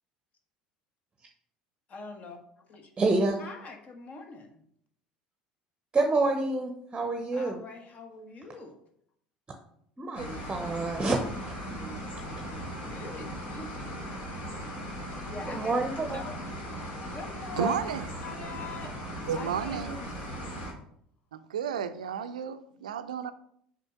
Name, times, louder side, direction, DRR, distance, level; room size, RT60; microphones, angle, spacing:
voice 1, 1.9-2.9 3.4-4.6 7.3-8.9 11.6-13.8 15.3-15.7 16.1-16.4 17.1-17.8 18.2-18.9 19.3-20.4, left 4 dB, 35° left, 1.5 m, -44 dB
voice 2, 3.0-3.4 5.9-7.6 10.0-11.5 12.3-12.5 15.5-16.2 17.6-17.7, right 3 dB, 20° right, 0.9 m, -28 dB
sound 1, 10.1-20.7, equal, 55° left, 3.0 m, -38 dB
voice 3, 17.6-18.1 19.3-20.0 21.3-23.3, right 7 dB, 75° right, 0.5 m, -32 dB
6.5 x 5.1 x 5.1 m
figure-of-eight pair, 65°, 4 cm